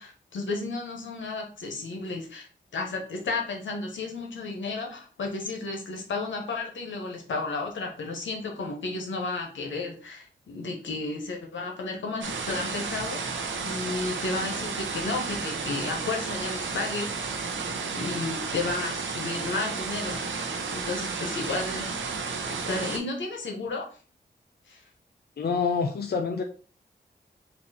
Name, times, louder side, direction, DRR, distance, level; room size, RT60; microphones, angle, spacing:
voice 1, 0.0-2.5 2.7-17.4 17.7-21.9 22.5-23.9 24.7-24.8, left 3 dB, 85° left, 1 dB, 1.1 m, -33 dB
sound 1, 12.2-23.0, right 4 dB, 85° right, 0.7 m, -32 dB
voice 2, 25.4-26.4, left 5 dB, 55° left, 4 dB, 0.6 m, -27 dB
4.2 x 2.8 x 4.2 m, 0.37 s
cardioid pair, 45°, 19 cm